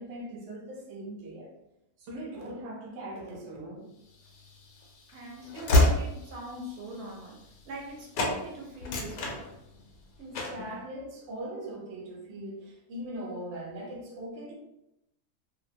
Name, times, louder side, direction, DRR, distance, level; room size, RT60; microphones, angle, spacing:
voice 1, 0.0-1.5 2.0-3.9 10.2-14.5, right 1 dB, 60° right, -2 dB, 0.9 m, -40 dB
Train / Slam, 4.3-7.9 8.1-8.4 8.7-9.9 10.3-10.7, left 1 dB, 75° left, 1.0 m, -28 dB
voice 2, 5.1-7.4 7.6-9.5, right 1 dB, 85° right, -1 dB, 1.1 m, -41 dB
2.7 x 2.0 x 2.6 m, 0.85 s
omnidirectional pair, 1.5 m